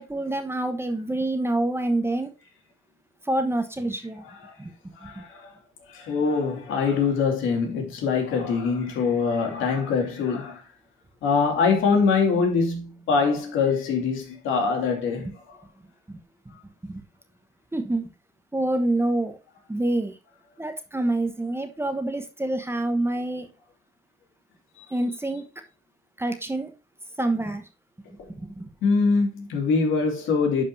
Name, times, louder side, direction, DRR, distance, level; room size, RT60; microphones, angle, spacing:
voice 1, 0.0-2.3 3.2-4.2 4.6-5.1 16.1-16.2 16.9-17.0 17.7-18.1 18.5-19.4 19.7-20.1 20.6-23.5 24.9-25.4 26.2-26.7 27.2-27.6 28.4-28.7, right 2 dB, 10° right, 1.1 m, -27 dB
voice 2, 4.2-4.5 5.0-5.5 5.9-10.6 11.2-15.6 24.8-24.9 28.8-30.6, left 5 dB, 85° left, 2.6 m, -24 dB
11.0 x 5.2 x 2.7 m
cardioid pair, 90°, 20 cm